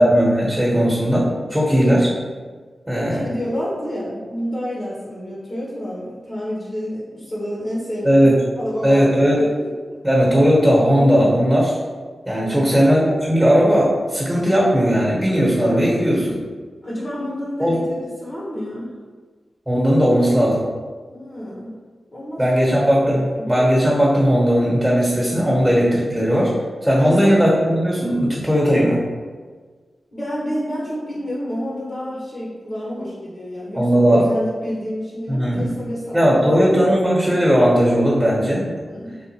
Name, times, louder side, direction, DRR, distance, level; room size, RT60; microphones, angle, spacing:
voice 1, 0.0-2.1 2.9-3.2 8.0-8.4 8.8-9.4 10.0-11.8 12.3-16.4 17.6-17.8 19.7-20.6 22.4-26.5 26.8-29.0 33.7-34.2 35.3-35.7 36.1-38.9, equal, 10° right, -5 dB, 1.2 m, -17 dB
voice 2, 3.1-10.0 12.4-12.8 16.8-18.9 21.1-21.7 22.1-22.7 23.1-23.5 27.0-27.4 30.1-36.9 38.9-39.2, equal, 45° left, -7 dB, 1.0 m, -29 dB
3.5 x 2.5 x 2.9 m, 1.5 s
cardioid pair, 50°, 0 cm